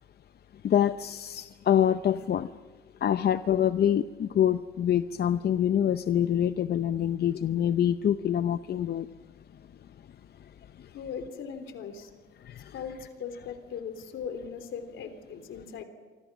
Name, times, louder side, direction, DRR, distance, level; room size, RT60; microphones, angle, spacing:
voice 1, 0.6-2.5 3.0-9.1 12.4-12.7, left 10 dB, 55° left, 11 dB, 0.7 m, -25 dB
voice 2, 10.9-12.1 12.7-12.9 13.2-15.8, left 7 dB, 75° left, 8 dB, 3.5 m, -39 dB
28.5 x 25.0 x 6.2 m, 1.5 s
cardioid pair, 90°, 20 cm